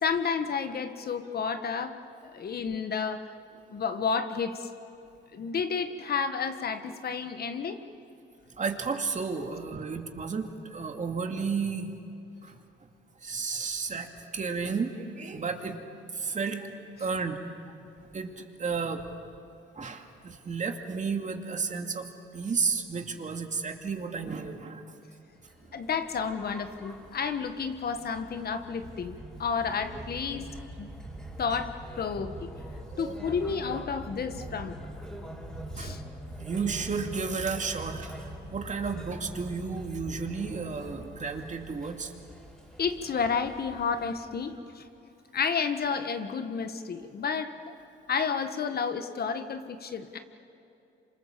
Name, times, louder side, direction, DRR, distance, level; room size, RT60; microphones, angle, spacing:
voice 1, 0.0-2.0 2.2-3.3 3.7-4.7 5.3-7.8 25.7-30.9 31.4-32.5 33.0-34.8 35.8-36.0 42.8-44.8 45.3-47.6 48.1-50.2, left 6 dB, 50° left, 8 dB, 1.5 m, -31 dB
voice 2, 8.6-11.9 12.4-12.6 13.2-15.8 16.1-16.7 17.0-17.4 18.1-19.0 19.7-22.1 22.3-24.8 32.9-33.2 35.7-36.0 36.4-42.1, right 5 dB, 40° right, 4 dB, 2.4 m, -32 dB
sound 1, 25.4-44.6, right 1 dB, 5° left, 4.9 m, -44 dB
27.0 x 26.5 x 7.5 m, 2.7 s
cardioid pair, 90°, 20 cm